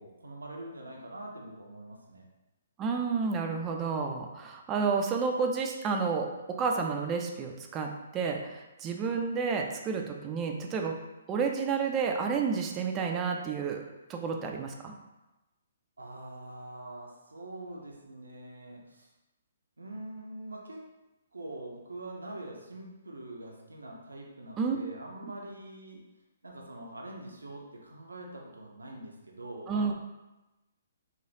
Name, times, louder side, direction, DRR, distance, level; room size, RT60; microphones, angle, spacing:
voice 1, 0.0-2.3 16.0-19.1 19.8-20.8 21.3-26.0 26.4-29.9, right 1 dB, 85° right, -1 dB, 0.5 m, -44 dB
voice 2, 2.8-11.0 11.3-14.9 24.6-24.8 29.7-29.9, right 5 dB, 20° right, 2 dB, 0.4 m, -30 dB
3.1 x 2.3 x 2.6 m, 1.0 s
figure-of-eight pair, 130°, 0 cm